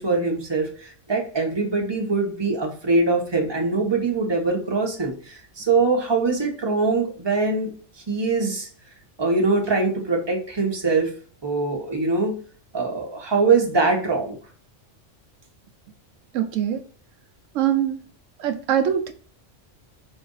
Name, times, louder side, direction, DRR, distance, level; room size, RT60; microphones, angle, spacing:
voice 1, 0.0-7.7 8.1-8.7 9.2-11.1 11.4-12.4 12.7-14.4, right 3 dB, 20° right, 1.1 m, -23 dB
voice 2, 16.3-16.8 17.5-18.0 18.4-19.1, right 9 dB, 85° right, 0.9 m, -22 dB
5.3 x 2.5 x 3.9 m
omnidirectional pair, 1.3 m